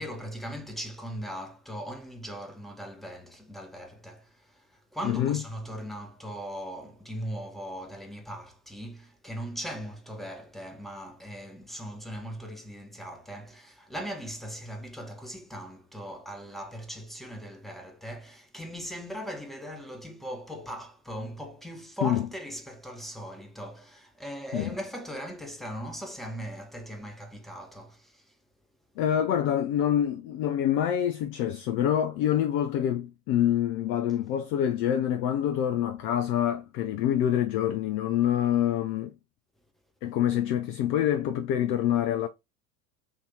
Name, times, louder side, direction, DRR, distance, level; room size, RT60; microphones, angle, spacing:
voice 1, 0.0-28.4, equal, ahead, 1.1 m, -39 dB
voice 2, 5.0-5.4 22.0-22.3 24.5-24.7 29.0-39.1 40.0-42.3, left 10 dB, 30° left, 0.4 m, -26 dB
5.7 x 2.7 x 2.7 m
figure-of-eight pair, 75°, 45 cm